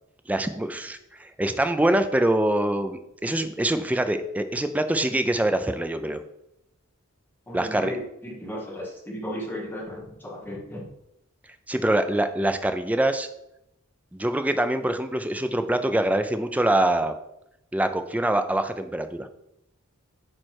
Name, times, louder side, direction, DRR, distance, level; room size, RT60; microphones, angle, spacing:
voice 1, 0.3-6.2 7.5-7.9 11.7-13.3 14.1-17.1 17.7-19.3, right 1 dB, 5° right, 8 dB, 0.4 m, -24 dB
voice 2, 7.5-10.9, equal, 10° left, -2 dB, 1.4 m, -35 dB
8.6 x 3.2 x 4.6 m, 0.82 s
head